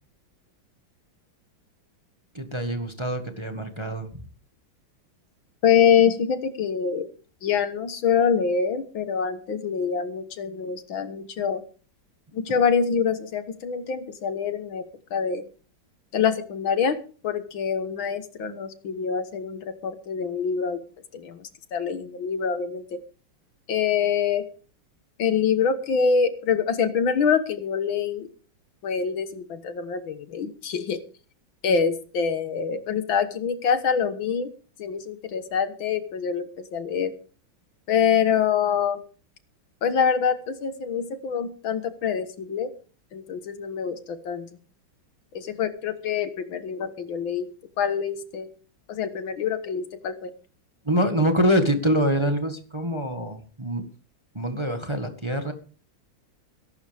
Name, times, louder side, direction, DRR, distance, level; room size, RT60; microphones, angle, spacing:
voice 1, 2.3-4.2 50.8-53.8 54.3-55.5, equal, 15° right, 6 dB, 1.5 m, -25 dB
voice 2, 5.6-7.1 7.4-11.6 12.3-14.8 15.1-15.5 16.1-17.0 17.2-20.8 21.1-22.8 23.7-24.4 25.2-28.3 28.8-31.0 31.6-34.5 34.8-37.1 37.9-39.0 39.8-42.7 43.1-44.5 45.3-47.5 47.8-48.5 48.9-50.3, left 6 dB, 70° left, 10 dB, 2.1 m, -25 dB
21.5 x 12.0 x 3.5 m, 0.39 s
omnidirectional pair, 2.3 m